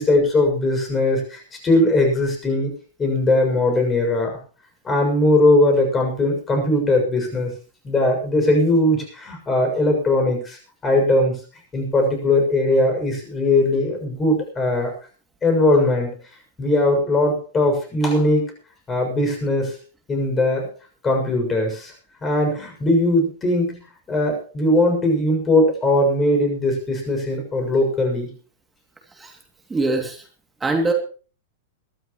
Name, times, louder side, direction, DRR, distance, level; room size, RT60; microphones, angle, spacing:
voice 1, 0.0-2.7 3.0-4.4 4.8-7.5 7.8-11.4 11.7-14.9 15.4-16.1 16.6-18.4 18.9-19.7 20.1-20.7 21.0-21.9 22.2-23.8 24.1-28.3, left 1 dB, 20° left, 3 dB, 6.8 m, -19 dB
voice 2, 29.7-30.2 30.6-30.9, right 2 dB, 15° right, 3 dB, 2.7 m, -22 dB
22.5 x 12.5 x 3.1 m, 0.38 s
hypercardioid pair, 105°, 0 cm